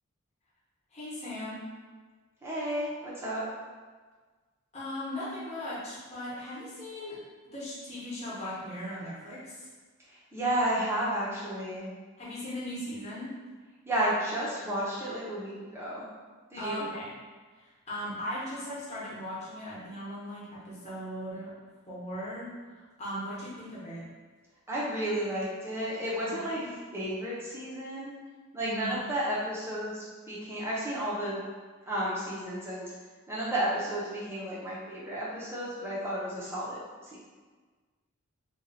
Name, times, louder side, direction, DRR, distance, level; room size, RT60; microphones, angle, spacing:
voice 1, 0.9-1.6 4.7-7.2 7.5-9.7 12.2-13.3 16.5-17.1 17.5-21.5 21.9-24.1 26.3-26.7 28.6-29.0, left 1 dB, 30° left, -9 dB, 1.0 m, -38 dB
voice 2, 2.4-3.4 10.1-11.9 13.9-16.0 16.5-16.8 24.7-26.6 26.9-28.1 28.5-31.4 31.9-32.9 33.3-36.8 37.1-37.2, right 1 dB, 10° right, -7 dB, 0.7 m, -32 dB
2.8 x 2.3 x 4.0 m, 1.4 s
head